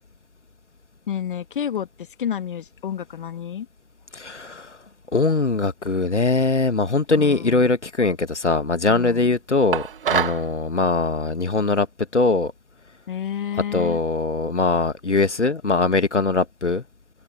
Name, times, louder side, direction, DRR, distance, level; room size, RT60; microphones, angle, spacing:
voice 1, 1.1-3.7 7.1-7.7 8.9-9.3 13.1-14.0, left 9 dB, 50° left, 1.8 m, -30 dB
voice 2, 4.1-4.8 5.1-11.9 12.1-12.5 13.7-16.8, left 3 dB, 80° left, 1.8 m, -21 dB
sound 1, 9.7-10.5, right 8 dB, 50° right, 2.5 m, -24 dB
figure-of-eight pair, 130°, 34 cm